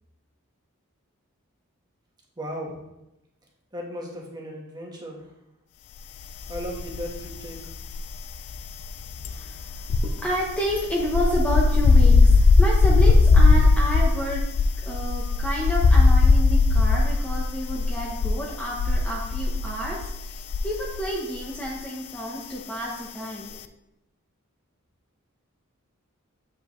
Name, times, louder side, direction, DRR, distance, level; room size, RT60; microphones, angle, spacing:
voice 1, 2.4-2.8 3.7-5.3 6.5-7.6, equal, 20° right, -1 dB, 1.3 m, -36 dB
sound 1, 6.5-7.3 7.6-21.1 21.4-21.6, left 3 dB, 85° left, 0.4 m, -19 dB
voice 2, 9.2-14.4 14.8-23.6, equal, 5° left, -4 dB, 0.8 m, -30 dB
7.6 x 5.2 x 3.1 m, 0.91 s
head